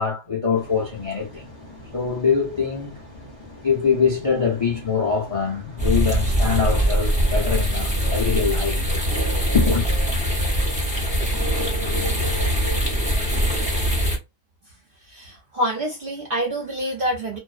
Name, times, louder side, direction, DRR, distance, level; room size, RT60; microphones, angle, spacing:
voice 1, 0.0-1.4 1.9-2.9 3.6-8.8 9.5-9.9, left 6 dB, 60° left, 0.3 m, -23 dB
sound 1, 0.5-13.0, left 1 dB, 35° left, 0.6 m, -43 dB
sound 2, 5.8-14.2, equal, 10° right, 0.5 m, -22 dB
voice 2, 15.0-17.4, equal, 65° right, 0.5 m, -27 dB
2.5 x 2.0 x 2.4 m
omnidirectional pair, 1.6 m